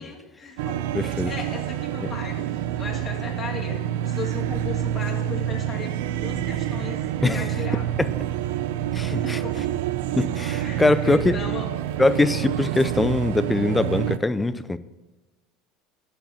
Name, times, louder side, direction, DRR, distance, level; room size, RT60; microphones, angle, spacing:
voice 1, 0.0-7.9 9.2-9.5 10.6-11.7, left 5 dB, 30° left, -3 dB, 2.1 m, -37 dB
sound 1, 0.6-14.2, right 11 dB, 80° right, 0.5 m, -27 dB
voice 2, 0.9-1.3 6.3-6.5 7.2-7.5 8.0-8.1 8.9-9.7 10.2-11.4 12.0-14.8, left 2 dB, 10° left, 14 dB, 0.6 m, -22 dB
9.2 x 7.8 x 7.1 m, 1.2 s
supercardioid pair, 110°, 0 cm